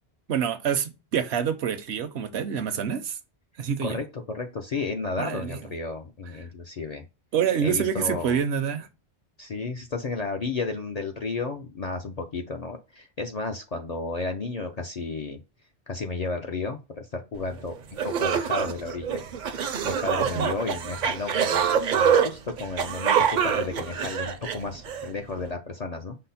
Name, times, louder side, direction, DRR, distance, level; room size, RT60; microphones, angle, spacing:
voice 1, 0.3-3.2 3.6-4.0 5.2-5.6 7.3-8.9 20.3-20.5, right 7 dB, 75° right, 0.9 m, -27 dB
voice 2, 3.8-7.0 7.6-8.4 9.4-15.4 15.9-17.7 18.0-19.2 19.8-26.2, left 3 dB, 50° left, 0.4 m, -33 dB
sound 1, 17.6-17.7 18.0-25.1, right 7 dB, 55° right, 0.5 m, -25 dB
5.5 x 2.0 x 4.0 m
omnidirectional pair, 1.1 m